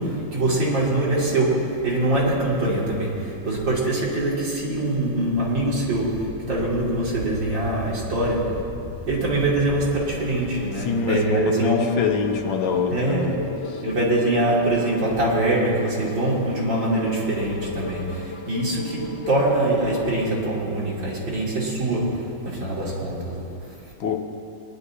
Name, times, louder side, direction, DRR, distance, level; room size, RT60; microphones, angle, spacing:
voice 1, 0.0-8.6 9.0-12.0 12.6-13.5 13.8-23.8, right 1 dB, 65° right, -6 dB, 3.2 m, -23 dB
Wind, 5.3-11.0, equal, 10° left, 0.9 m, -39 dB
sound 1, 9.7-20.4, left 3 dB, 50° left, 1.1 m, -38 dB
voice 2, 10.8-13.3 13.7-13.8 24.0-24.1, left 6 dB, 85° left, 3 dB, 1.8 m, -25 dB
21.5 x 11.0 x 2.8 m, 2.6 s
omnidirectional pair, 2.2 m